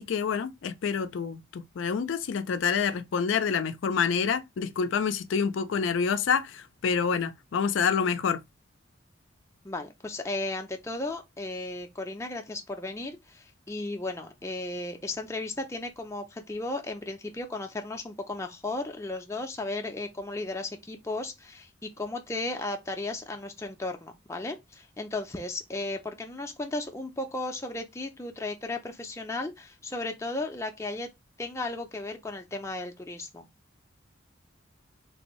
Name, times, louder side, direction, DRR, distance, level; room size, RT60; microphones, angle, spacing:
voice 1, 0.0-8.4, left 6 dB, 80° left, 0.4 m, -27 dB
voice 2, 9.6-31.1 31.4-33.5, left 2 dB, 15° left, 0.5 m, -35 dB
3.4 x 2.6 x 3.0 m
head